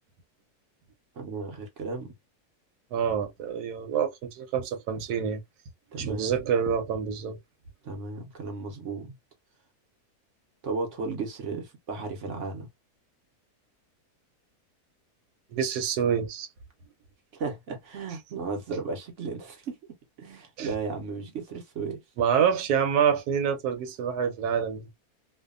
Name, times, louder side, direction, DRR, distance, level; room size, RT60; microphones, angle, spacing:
voice 1, 1.2-2.1 5.9-6.3 7.8-9.2 10.6-12.7 17.3-19.8 20.2-22.0, right 4 dB, 60° right, 1.0 m, -34 dB
voice 2, 2.9-5.4 6.0-7.4 15.5-16.5 20.6-20.7 22.2-24.9, right 7 dB, 85° right, 1.2 m, -27 dB
2.7 x 2.3 x 2.4 m
omnidirectional pair, 1.6 m